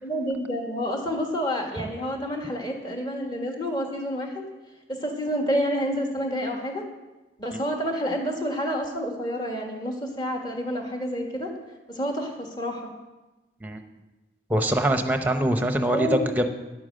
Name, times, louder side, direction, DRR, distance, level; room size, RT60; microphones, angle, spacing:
voice 1, 0.0-4.5 4.9-6.8 7.4-11.5 11.9-12.9 15.9-16.2, equal, 25° left, 2 dB, 1.6 m, -29 dB
voice 2, 14.5-16.5, right 1 dB, 10° right, 7 dB, 0.8 m, -24 dB
10.0 x 8.8 x 6.5 m, 1.1 s
head